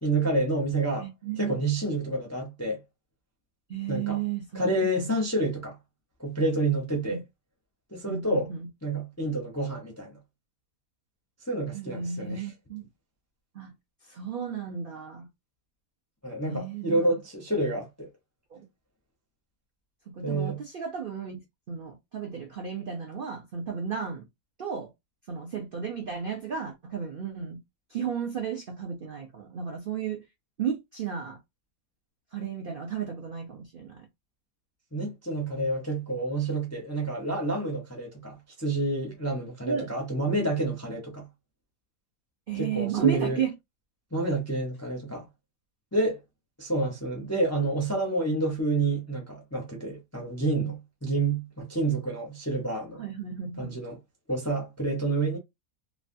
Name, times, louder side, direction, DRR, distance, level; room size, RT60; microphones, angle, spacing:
voice 1, 0.0-1.1 1.4-2.8 3.9-4.2 4.5-5.8 6.2-7.2 7.9-8.5 8.8-10.1 11.5-12.5 16.2-18.1 20.2-20.6 34.9-41.3 42.5-43.4 44.1-45.3 45.9-46.2 46.6-53.0 53.6-54.0 54.3-55.4, right 2 dB, 20° left, 0.4 m, -28 dB
voice 2, 1.0-1.6 3.7-5.2 7.0-7.2 8.1-8.7 11.7-12.9 13.5-13.7 14.0-15.3 16.5-17.1 18.5-18.6 20.1-21.4 21.7-24.3 24.6-24.9 25.3-27.6 27.9-30.2 30.6-31.4 32.3-34.1 39.6-39.9 42.5-43.5 53.0-53.8, right 7 dB, 60° right, 0.5 m, -33 dB
3.1 x 2.3 x 2.6 m
omnidirectional pair, 1.7 m